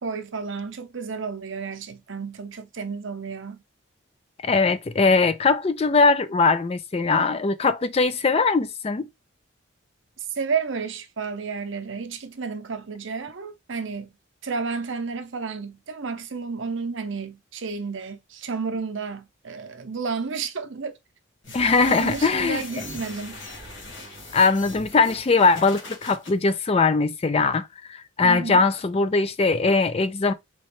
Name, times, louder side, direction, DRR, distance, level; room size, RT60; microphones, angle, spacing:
voice 1, 0.0-3.6 10.2-14.2 14.4-21.0 21.9-23.4 28.2-28.6, right 5 dB, 70° right, 0.7 m, -31 dB
voice 2, 4.4-9.1 21.5-22.6 24.3-30.3, left 4 dB, 30° left, 0.4 m, -21 dB
sound 1, 21.4-26.3, left 2 dB, 65° left, 1.6 m, -40 dB
4.3 x 3.0 x 3.1 m
head